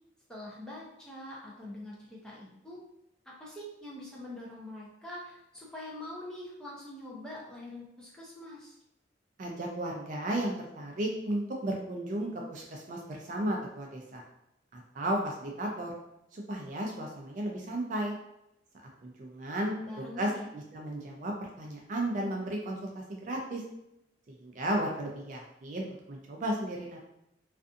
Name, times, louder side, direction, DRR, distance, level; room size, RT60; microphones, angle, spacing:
voice 1, 0.3-2.8 3.4-8.8 19.4-19.5 19.9-20.5, left 1 dB, 5° left, -5 dB, 0.6 m, -44 dB
voice 2, 9.4-14.2 14.7-16.0 16.3-18.2 19.0-23.6 24.4-27.0, right 1 dB, 45° right, 0 dB, 0.4 m, -34 dB
2.5 x 2.4 x 2.4 m, 0.85 s
head